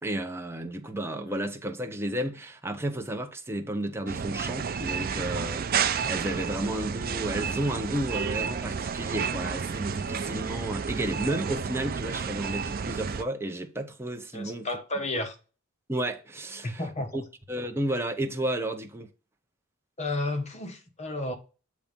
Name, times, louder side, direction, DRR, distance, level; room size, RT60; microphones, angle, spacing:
voice 1, 0.0-14.7 15.9-16.8 17.1-17.2 17.5-19.1, right 1 dB, 10° right, 0.7 m, -32 dB
sound 1, 4.1-13.2, right 6 dB, 45° right, 0.5 m, -31 dB
voice 2, 14.3-15.3 16.6-17.2 20.0-21.3, left 2 dB, 35° left, 1.2 m, -32 dB
7.2 x 3.1 x 5.2 m
head